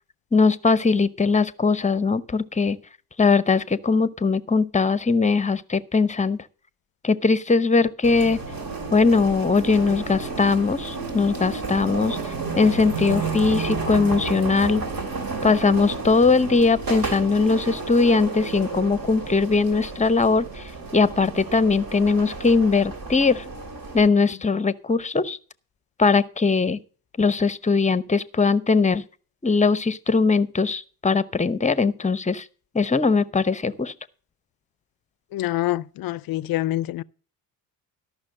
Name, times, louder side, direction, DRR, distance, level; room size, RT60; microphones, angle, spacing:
voice 1, 0.3-2.8 3.2-6.4 7.0-8.4 8.9-14.8 15.4-20.6 20.9-23.4 23.9-25.4 26.0-26.8 27.2-29.0 29.4-32.4 32.7-33.9, left 4 dB, 15° left, 0.8 m, -20 dB
sound 1, 8.0-24.1, right 3 dB, 45° right, 2.8 m, -31 dB
voice 2, 35.3-37.0, left 15 dB, 50° left, 0.5 m, -26 dB
13.0 x 6.2 x 6.3 m
supercardioid pair, 70°, 46 cm